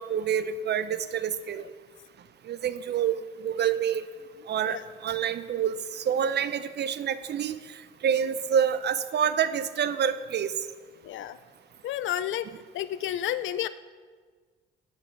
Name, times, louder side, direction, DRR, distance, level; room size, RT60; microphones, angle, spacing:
voice 1, 0.0-1.6 2.5-3.2 3.4-4.1 4.5-4.8 5.0-7.6 8.0-10.5, right 8 dB, 60° right, 13 dB, 0.8 m, -27 dB
voice 2, 11.0-11.4 11.8-12.5 12.7-13.7, left 12 dB, 75° left, 15 dB, 0.6 m, -30 dB
16.0 x 9.5 x 4.6 m, 1.5 s
cardioid pair, 90°, 20 cm